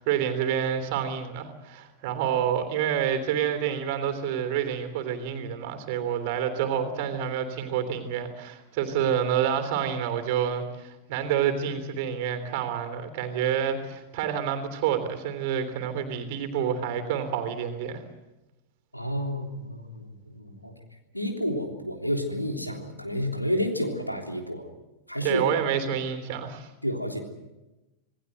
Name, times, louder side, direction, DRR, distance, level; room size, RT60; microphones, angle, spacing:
voice 1, 0.0-18.0 25.2-26.7, right 8 dB, 50° right, 8 dB, 3.3 m, -28 dB
voice 2, 18.9-20.7 21.1-24.7 25.1-25.4 26.8-27.2, equal, 90° left, 3 dB, 3.4 m, -30 dB
27.0 x 19.0 x 7.9 m, 1.0 s
figure-of-eight pair, 90°, 0 cm